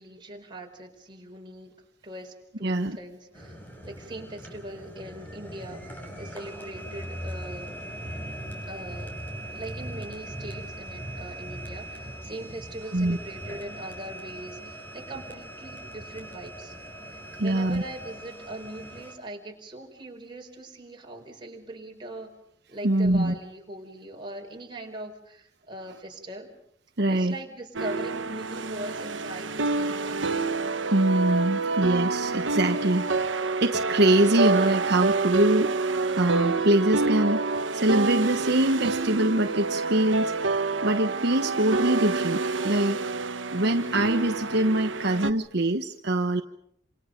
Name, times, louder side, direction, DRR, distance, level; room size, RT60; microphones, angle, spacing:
voice 1, 0.0-1.8 2.0-3.6 3.8-7.7 8.7-9.1 9.5-16.7 17.1-22.3 22.7-26.5 27.1-30.4, right 1 dB, 25° right, 1 dB, 4.9 m, -41 dB
voice 2, 2.6-3.0 12.9-13.2 17.4-17.8 22.8-23.3 27.0-27.3 30.9-43.0 43.5-46.4, right 1 dB, 60° right, 5 dB, 1.2 m, -24 dB
sound 1, 3.3-19.1, right 1 dB, 10° left, 6.0 m, -40 dB
sound 2, 27.7-45.3, right 3 dB, 80° right, 1.3 m, -27 dB
28.5 x 27.5 x 5.3 m, 0.71 s
head